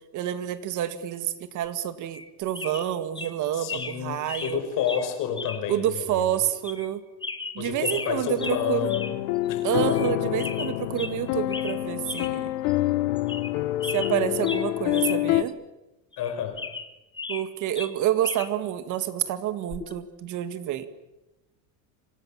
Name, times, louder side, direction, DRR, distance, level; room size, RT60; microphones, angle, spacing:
voice 1, 0.1-4.6 5.7-7.0 7.6-8.9 9.6-12.5 13.9-15.6 17.3-20.9, right 11 dB, 45° right, 11 dB, 1.9 m, -28 dB
sound 1, 2.1-2.3 2.5-2.9 3.1-3.3 3.7-4.0 4.3-4.6 4.9-5.0 5.4-5.6 6.0-6.1 6.6-6.9 7.2-8.1 8.4-8.6 8.9-9.1 9.4-9.5 9.9-10.1 10.4-11.2 11.5-11.8 12.0-12.3 12.7-12.8 13.2-13.5 13.8-15.2 15.5-15.6 16.1-17.5 17.7-18.5 19.7-19.9, left 4 dB, 10° left, 1.6 m, -36 dB
voice 2, 3.5-6.3 7.6-9.2 9.5-9.7 16.2-16.6, left 9 dB, 50° left, 8 dB, 5.6 m, -30 dB
sound 2, 8.4-15.4, left 16 dB, 85° left, 1.4 m, -27 dB
28.5 x 26.5 x 7.4 m, 1.0 s
cardioid pair, 160°, 41 cm